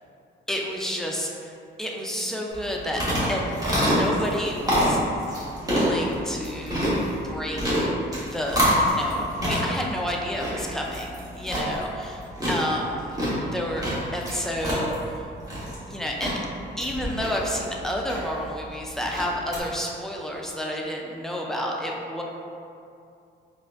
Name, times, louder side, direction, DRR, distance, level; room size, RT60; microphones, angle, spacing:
voice 1, 0.5-1.5 1.8-3.0 3.3-5.0 5.6-7.9 8.3-12.1 12.5-13.8 14.1-15.3 15.9-16.4 16.8-22.2, equal, ahead, -1 dB, 0.4 m, -30 dB
sound 1, 2.5-19.6, equal, 20° right, 1.2 m, -27 dB
4.2 x 2.5 x 2.5 m, 2.5 s
cardioid pair, 90°, 20 cm